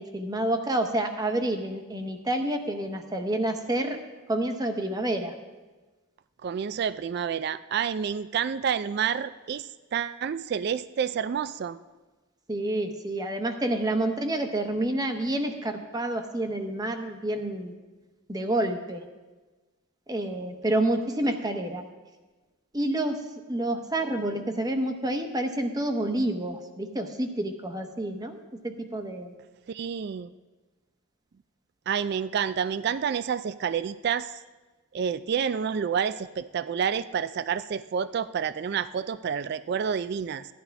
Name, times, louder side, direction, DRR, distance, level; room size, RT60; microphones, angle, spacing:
voice 1, 0.0-4.0 4.3-5.3 12.5-17.7 18.3-19.0 20.1-21.8 22.7-23.2 23.5-29.3, right 1 dB, 20° right, 5 dB, 0.9 m, -28 dB
voice 2, 6.4-11.8 29.7-30.3 31.9-34.3 34.9-40.5, right 7 dB, 50° right, 15 dB, 0.3 m, -29 dB
16.0 x 11.0 x 3.4 m, 1.2 s
head